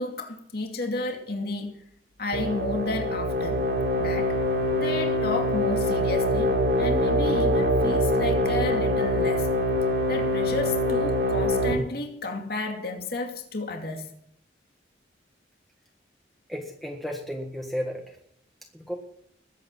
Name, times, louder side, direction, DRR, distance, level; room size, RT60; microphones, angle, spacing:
voice 1, 0.0-1.8 2.2-3.6 4.0-4.4 4.8-9.5 10.1-14.1, left 2 dB, 60° left, 2.5 m, -32 dB
sound 1, 2.3-11.7, equal, 65° right, 2.9 m, -24 dB
voice 2, 16.5-18.2 18.7-18.9, equal, ahead, 1.6 m, -33 dB
21.5 x 8.9 x 5.6 m
head